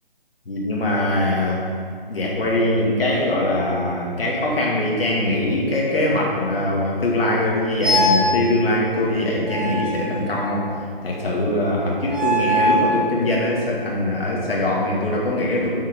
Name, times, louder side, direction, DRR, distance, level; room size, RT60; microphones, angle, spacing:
voice 1, 0.5-1.7 2.1-10.6 11.0-15.7, left 1 dB, 80° left, -4 dB, 2.2 m, -22 dB
sound 1, 7.8-8.3 9.4-10.7 12.0-12.9, equal, ahead, 1.5 m, -22 dB
8.9 x 5.1 x 5.3 m, 2.2 s
hypercardioid pair, 180°, 29 cm